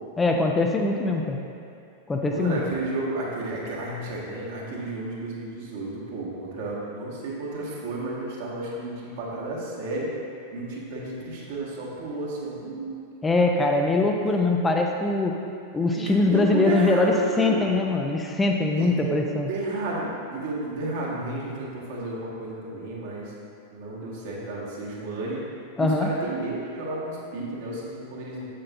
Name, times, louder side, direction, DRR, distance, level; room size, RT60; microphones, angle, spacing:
voice 1, 0.2-1.4 2.1-2.6 13.2-15.4 15.7-19.5 25.8-26.1, left 3 dB, 15° left, 1 dB, 0.5 m, -22 dB
voice 2, 2.3-10.1 10.5-13.0 15.9-17.6 18.8-23.3 23.7-25.4 25.8-28.4, right 2 dB, 55° right, -5 dB, 1.6 m, -32 dB
7.5 x 7.5 x 2.5 m, 2.5 s
figure-of-eight pair, 90°, 0 cm